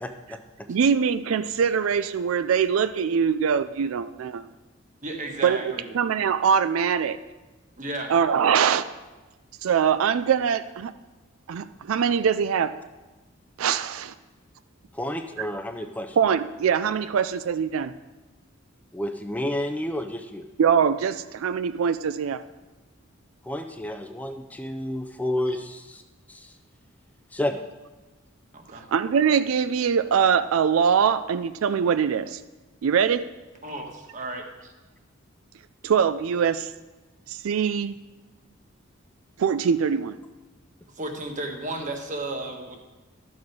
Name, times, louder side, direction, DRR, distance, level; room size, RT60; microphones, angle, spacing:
voice 1, 0.0-0.4 14.9-16.2 18.9-20.4 23.4-26.0 26.3-26.5 27.3-27.6, left 1 dB, 10° left, 6 dB, 0.5 m, -30 dB
voice 2, 0.7-4.5 5.4-7.2 8.1-8.8 9.6-10.9 11.5-12.7 13.6-14.1 15.4-15.5 16.2-17.9 20.6-22.4 28.9-32.4 32.8-33.2 35.8-36.7 37.3-38.0 39.4-40.2, right 7 dB, 90° right, 13 dB, 0.4 m, -23 dB
voice 3, 5.0-5.9 7.8-8.1 28.5-28.9 33.6-34.5 40.9-42.8, right 2 dB, 40° right, 3 dB, 1.4 m, -33 dB
12.0 x 7.3 x 4.7 m, 1.2 s
head